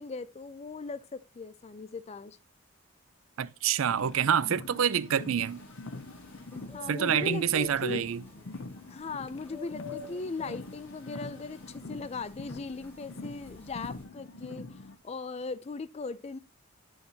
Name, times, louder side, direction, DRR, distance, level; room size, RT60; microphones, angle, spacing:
voice 1, 0.0-2.4 6.5-8.0 8.9-16.4, left 4 dB, 30° left, 0.4 m, -39 dB
voice 2, 3.4-5.6 6.9-8.2, right 8 dB, 75° right, 0.4 m, -27 dB
Car, 3.8-14.9, left 2 dB, 65° left, 0.7 m, -44 dB
sound 1, 5.4-14.0, left 2 dB, 10° left, 2.4 m, -49 dB
9.4 x 6.4 x 2.7 m
head